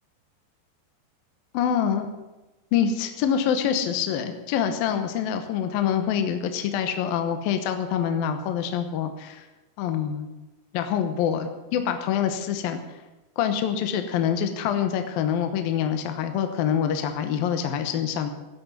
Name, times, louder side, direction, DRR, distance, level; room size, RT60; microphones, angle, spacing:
voice 1, 1.5-2.1 2.7-9.4 9.8-10.3 10.7-12.8 13.4-18.3, left 8 dB, 70° left, 7 dB, 2.6 m, -25 dB
15.5 x 8.6 x 9.6 m, 1.1 s
omnidirectional pair, 4.9 m